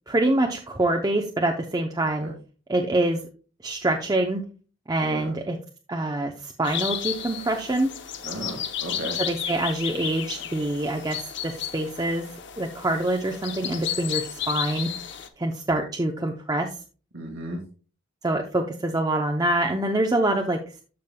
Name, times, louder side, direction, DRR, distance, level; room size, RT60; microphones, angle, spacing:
voice 1, 0.1-2.3 2.7-3.2 3.6-4.4 4.9-5.6 5.9-7.9 9.2-12.3 12.6-14.9 15.4-16.7 18.2-20.6, right 1 dB, 20° right, 2 dB, 0.6 m, -25 dB
voice 2, 2.0-2.3 5.0-5.3 8.2-9.2 17.1-17.6, right 1 dB, 85° right, -1 dB, 1.9 m, -35 dB
sound 1, 6.6-15.3, left 10 dB, 60° left, 0.8 m, -33 dB
13.5 x 5.1 x 2.2 m, 0.36 s
head